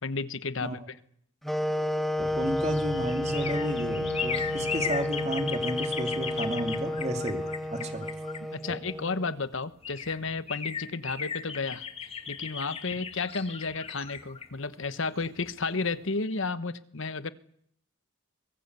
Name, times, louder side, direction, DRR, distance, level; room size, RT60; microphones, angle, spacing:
voice 1, 0.0-0.8 8.5-11.9 12.3-17.3, left 4 dB, 65° left, 14 dB, 1.1 m, -32 dB
sound 1, 1.4-9.4, left 1 dB, ahead, 1.0 m, -31 dB
sound 2, 2.2-9.0 9.5-9.6 9.8-15.6 15.9-16.0, left 6 dB, 25° left, 1.8 m, -37 dB
voice 2, 2.2-8.1, right 1 dB, 30° right, 6 dB, 2.8 m, -33 dB
sound 3, 2.2-8.0, right 1 dB, 80° right, 3.5 m, -44 dB
23.5 x 22.0 x 8.2 m, 0.67 s
head